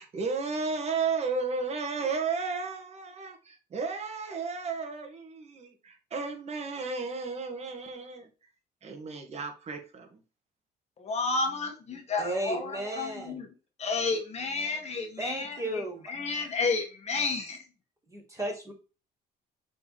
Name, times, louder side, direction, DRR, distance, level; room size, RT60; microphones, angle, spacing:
voice 1, 0.0-8.3 8.8-10.2, right 4 dB, 40° right, 2.0 m, -33 dB
voice 2, 11.0-13.5 13.8-17.6, left 4 dB, 40° left, 1.8 m, -31 dB
voice 3, 12.2-13.4 15.2-16.1 18.1-18.7, right 1 dB, 20° right, 3.7 m, -34 dB
6.5 x 4.4 x 3.3 m
cardioid pair, 110°, 17 cm